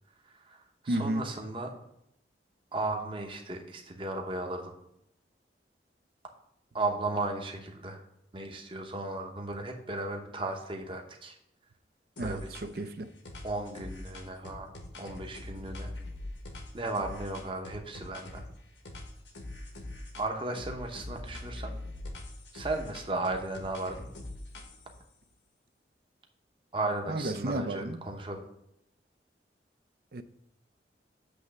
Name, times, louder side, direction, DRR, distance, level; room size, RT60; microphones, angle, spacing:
voice 1, 0.3-1.7 2.7-4.7 6.7-8.0 8.3-11.4 12.2-12.5 13.4-15.9 16.7-18.5 20.2-21.7 22.5-24.1 26.7-28.4, right 2 dB, 30° right, 0.9 m, -35 dB
voice 2, 0.9-1.3 12.2-13.1 27.1-28.0 30.1-30.2, right 1 dB, 55° right, 0.5 m, -32 dB
sound 1, 12.2-12.9 13.2-18.5 18.8-20.3 20.5-25.0, left 1 dB, 90° left, 1.3 m, -43 dB
8.3 x 3.2 x 6.4 m
head